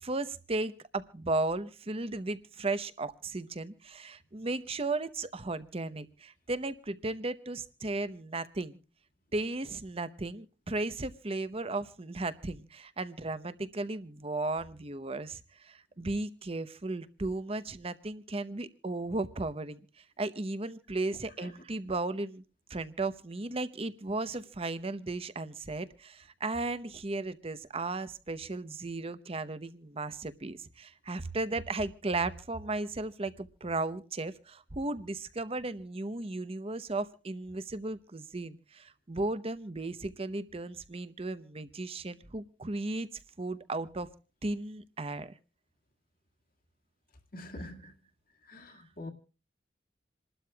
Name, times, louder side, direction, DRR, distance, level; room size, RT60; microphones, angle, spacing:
voice 1, 0.0-8.8 9.3-19.8 20.2-22.4 22.7-43.1 43.4-44.1 44.4-45.3, right 2 dB, 35° right, 0.9 m, -35 dB
voice 2, 47.3-47.9 48.4-49.1, left 1 dB, 50° left, 2.0 m, -44 dB
28.0 x 12.5 x 2.3 m
head